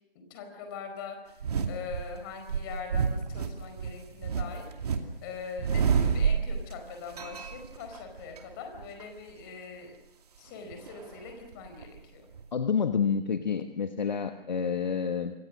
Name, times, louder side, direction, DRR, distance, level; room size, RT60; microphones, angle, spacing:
voice 1, 0.3-1.4 1.7-9.9 10.4-12.2, left 5 dB, 20° left, 5 dB, 4.6 m, -42 dB
sound 1, 1.4-2.0 2.5-5.0 5.3-6.8 7.1-8.4 8.7-9.0 10.7-12.0 12.3-12.4, right 6 dB, 40° right, 2.5 m, -28 dB
voice 2, 12.5-15.3, left 6 dB, 50° left, 8 dB, 1.5 m, -28 dB
27.0 x 24.0 x 6.5 m, 0.84 s
figure-of-eight pair, 145°, 30 cm